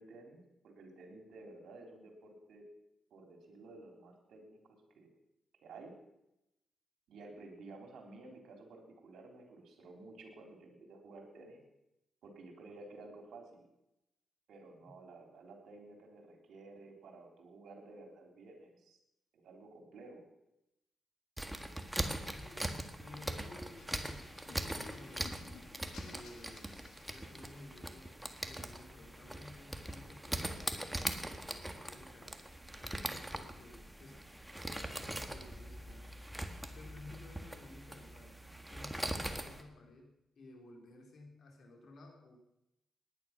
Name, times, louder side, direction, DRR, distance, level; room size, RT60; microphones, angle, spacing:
voice 1, 0.0-2.6 3.1-5.1 5.6-5.9 7.1-11.6 12.2-13.7 14.5-19.0 19.3-20.3, right 2 dB, 85° right, 3 dB, 3.7 m, -53 dB
sound 1, 21.4-39.6, right 1 dB, 5° right, 1.6 m, -42 dB
voice 2, 22.2-25.4 25.9-26.8 27.1-32.4 32.8-34.3 34.7-36.2 36.7-38.4 38.7-42.4, left 2 dB, 65° left, 2 dB, 4.1 m, -55 dB
sound 2, 23.8-27.7, left 6 dB, 85° left, 2.3 m, -56 dB
18.5 x 10.5 x 6.0 m, 0.88 s
cardioid pair, 90°, 0 cm